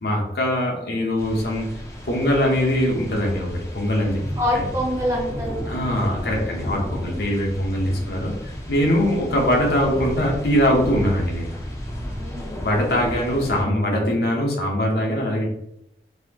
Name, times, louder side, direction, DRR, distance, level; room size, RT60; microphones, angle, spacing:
voice 1, 0.0-1.7 2.1-4.2 4.5-4.6 5.7-11.5 12.6-15.5, equal, 65° left, 0 dB, 0.8 m, -22 dB
sound 1, 1.2-13.6, equal, 15° left, 0.5 m, -33 dB
voice 2, 4.4-5.7 6.8-7.2 12.2-12.6, left 1 dB, 15° right, -2 dB, 0.8 m, -26 dB
4.1 x 2.8 x 2.8 m, 0.78 s
head